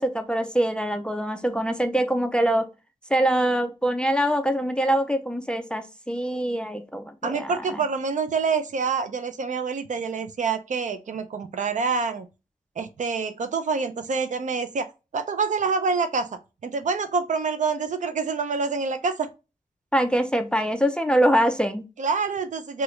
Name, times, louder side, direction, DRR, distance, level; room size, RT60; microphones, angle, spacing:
voice 1, 0.0-2.7 3.1-7.8 19.9-21.8, right 1 dB, 5° left, 0.3 m, -24 dB
voice 2, 7.2-12.3 12.8-14.9 15.1-16.3 16.6-19.3 22.0-22.8, right 5 dB, 60° right, 0.4 m, -26 dB
3.1 x 2.3 x 3.0 m
wide cardioid pair, 135°, 15 cm